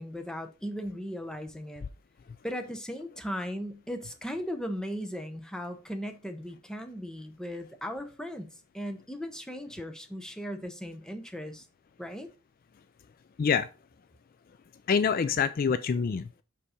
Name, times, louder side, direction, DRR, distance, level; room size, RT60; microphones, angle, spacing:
voice 1, 0.0-1.8 2.4-11.7 12.0-12.3, equal, 5° left, 0.7 m, -37 dB
voice 2, 14.9-16.4, left 6 dB, 40° left, 0.3 m, -26 dB
5.5 x 5.3 x 4.9 m
head